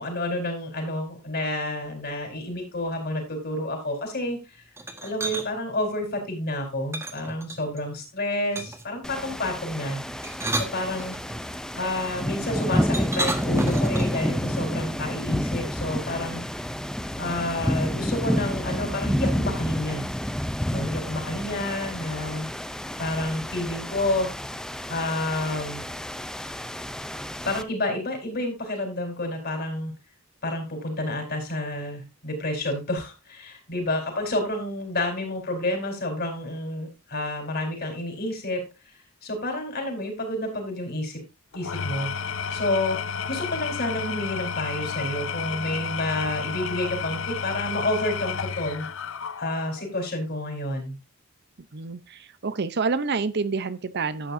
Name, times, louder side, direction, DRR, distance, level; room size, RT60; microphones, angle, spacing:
voice 1, 0.0-4.6 5.0-10.0 10.7-11.1 11.7-16.4 17.2-20.1 20.7-22.5 23.0-24.3 24.9-25.8 27.4-29.9 30.4-38.6 39.2-41.2 41.5-42.1 42.5-43.0 43.3-48.9 49.4-50.9, left 1 dB, 50° left, 4.2 m, -29 dB
sound 1, 4.8-5.5 6.9-7.8 8.5-8.9 10.1-11.4 12.9-14.3, right 1 dB, 10° right, 1.4 m, -31 dB
sound 2, 9.0-27.6, equal, 5° left, 0.5 m, -29 dB
Engine / Tools, 41.5-49.9, left 6 dB, 65° left, 0.7 m, -32 dB
voice 2, 51.7-54.3, right 4 dB, 50° right, 0.7 m, -28 dB
11.5 x 8.7 x 2.6 m
head